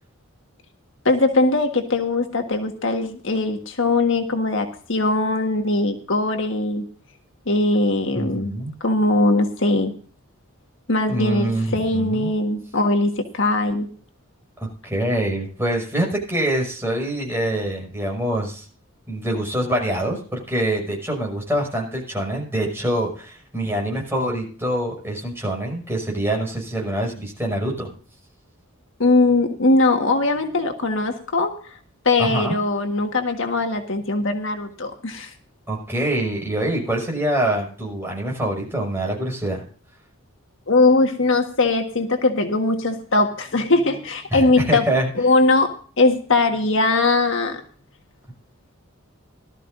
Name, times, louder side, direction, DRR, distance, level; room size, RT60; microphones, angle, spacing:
voice 1, 1.0-6.8 7.5-8.5 8.8-9.9 10.9-13.9 29.0-31.5 32.0-35.3 40.7-44.9 45.1-45.7 46.0-47.6, left 2 dB, 65° left, 5 dB, 1.6 m, -20 dB
voice 2, 8.1-8.7 11.1-12.3 14.6-18.6 19.1-27.9 32.2-32.6 35.7-39.6 44.3-45.1, right 1 dB, 10° right, -1 dB, 6.2 m, -25 dB
19.0 x 13.0 x 2.6 m, 0.43 s
head